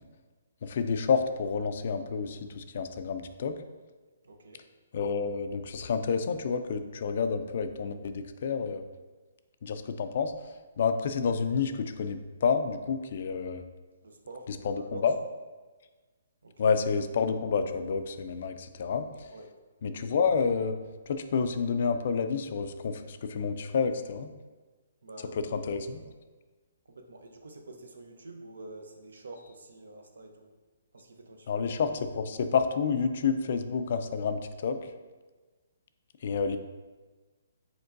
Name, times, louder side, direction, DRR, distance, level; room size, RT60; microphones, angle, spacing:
voice 1, 0.6-3.5 4.9-8.8 9.6-10.3 10.8-13.6 14.6-15.2 16.6-19.3 19.8-20.8 21.1-24.3 25.5-26.0 31.5-34.8 36.2-36.6, left 5 dB, 55° left, 9 dB, 0.3 m, -29 dB
voice 2, 4.2-4.7 14.0-15.1 16.4-16.7 19.3-19.5 25.0-25.7 26.0-26.1 26.9-30.5 30.9-31.7, right 2 dB, 85° right, 5 dB, 0.6 m, -47 dB
5.2 x 3.7 x 2.5 m, 1.3 s
hypercardioid pair, 150°, 0 cm